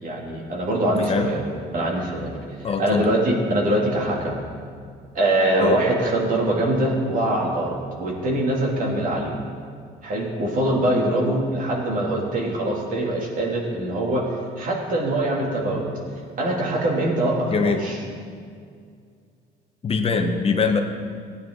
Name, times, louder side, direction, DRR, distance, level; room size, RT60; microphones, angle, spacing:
voice 1, 0.0-1.4 1.7-4.4 5.1-9.4 10.0-14.2 14.6-15.9 16.4-18.0, right 1 dB, 55° right, -2 dB, 2.5 m, -23 dB
voice 2, 2.6-3.0 5.6-5.8 17.5-17.8 19.8-20.8, left 5 dB, 35° left, 4 dB, 0.9 m, -22 dB
15.5 x 9.5 x 3.8 m, 2.2 s
cardioid pair, 110°, 17 cm